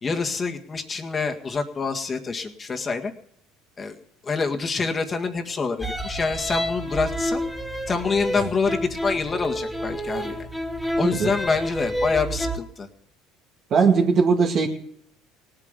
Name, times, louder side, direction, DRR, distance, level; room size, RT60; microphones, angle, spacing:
voice 1, 0.0-3.1 3.8-4.0 4.2-7.4 7.9-10.5 11.0-12.9, left 4 dB, 30° left, 4 dB, 1.9 m, -26 dB
sound 1, 5.8-12.6, equal, ahead, 1.8 m, -29 dB
voice 2, 11.0-11.3 13.7-14.7, right 5 dB, 50° right, 1 dB, 2.3 m, -19 dB
18.5 x 9.0 x 6.8 m, 0.69 s
supercardioid pair, 100°, 0 cm